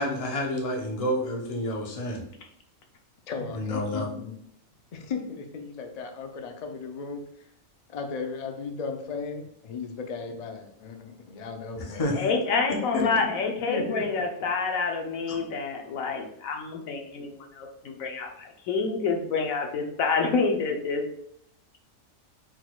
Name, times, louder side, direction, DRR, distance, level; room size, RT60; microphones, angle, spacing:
voice 1, 0.0-2.2 3.5-4.1 11.8-12.3 12.7-13.4 15.3-15.4, left 1 dB, 30° left, 0 dB, 0.8 m, -30 dB
voice 2, 3.3-4.3 4.9-7.2 7.9-12.0 13.0-13.1 13.7-14.2, left 5 dB, 70° left, 5 dB, 0.3 m, -35 dB
voice 3, 12.2-21.0, left 4 dB, 90° left, 3 dB, 1.2 m, -28 dB
4.5 x 4.1 x 2.3 m, 0.72 s
omnidirectional pair, 1.4 m